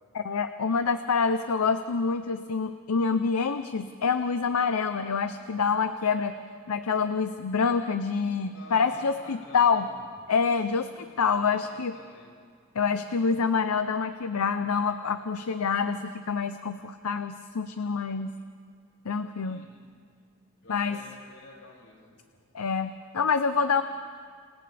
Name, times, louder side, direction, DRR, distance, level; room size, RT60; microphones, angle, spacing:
voice 1, 0.1-6.4 6.7-9.9 10.3-11.9 12.7-18.3 19.0-19.6 20.7-21.0 22.5-23.8, left 5 dB, 80° left, 10 dB, 0.6 m, -26 dB
voice 2, 8.5-9.9 10.8-11.6 11.9-12.3 19.4-19.9 20.6-22.2, left 2 dB, 65° left, -3 dB, 6.4 m, -50 dB
29.5 x 27.0 x 3.4 m, 2.1 s
head